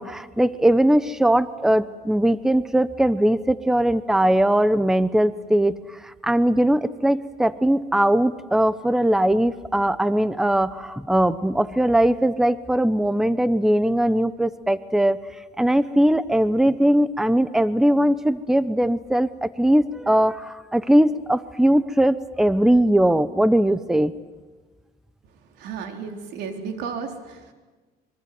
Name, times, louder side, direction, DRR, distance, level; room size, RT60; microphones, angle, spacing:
voice 1, 0.0-15.2 15.6-24.1, right 1 dB, 5° right, 14 dB, 0.9 m, -20 dB
voice 2, 25.6-27.5, right 6 dB, 85° right, 4 dB, 4.0 m, -33 dB
25.5 x 23.5 x 9.4 m, 1.3 s
cardioid pair, 110°, 17 cm